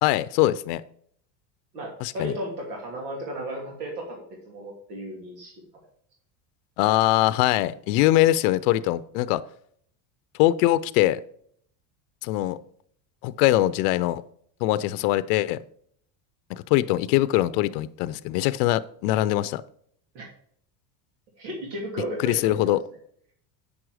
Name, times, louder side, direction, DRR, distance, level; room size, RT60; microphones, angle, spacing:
voice 1, 0.0-0.8 2.0-2.3 6.8-9.4 10.4-11.2 12.2-12.6 13.2-14.2 14.6-15.6 16.5-19.6 22.2-22.8, left 15 dB, 80° left, 14 dB, 0.6 m, -22 dB
voice 2, 1.7-5.6 20.1-20.3 21.4-22.8, right 1 dB, 90° right, -1 dB, 2.6 m, -35 dB
8.6 x 6.2 x 4.8 m, 0.63 s
supercardioid pair, 130°, 47 cm